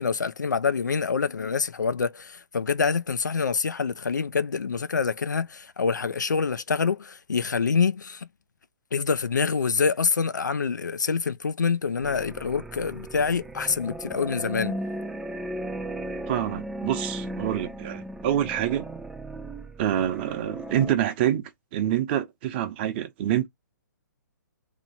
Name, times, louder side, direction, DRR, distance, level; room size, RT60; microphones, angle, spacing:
voice 1, 0.0-8.3 8.9-14.8, left 5 dB, 75° left, 0.5 m, -26 dB
sound 1, 12.0-20.9, right 1 dB, 5° right, 0.3 m, -36 dB
voice 2, 16.3-18.9 19.8-21.4 21.7-23.5, right 11 dB, 35° right, 0.9 m, -26 dB
3.0 x 3.0 x 4.1 m
figure-of-eight pair, 125°, 10 cm